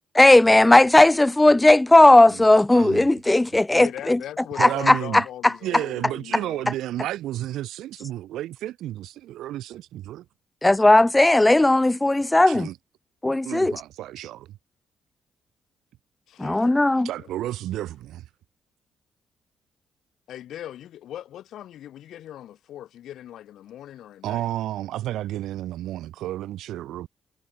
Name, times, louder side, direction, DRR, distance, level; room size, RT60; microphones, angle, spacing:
voice 1, 0.1-4.2 4.6-5.2 10.6-12.7 13.2-13.7 16.4-17.1, left 2 dB, 15° left, 0.6 m, -16 dB
voice 2, 2.7-3.1 4.6-5.2 5.6-10.2 12.5-12.8 13.4-14.6 17.0-18.3 24.2-27.1, right 13 dB, 85° right, 1.1 m, -32 dB
voice 3, 3.7-6.7 16.3-17.3 20.3-24.5, left 11 dB, 80° left, 2.1 m, -40 dB
cardioid pair, 75°, 0 cm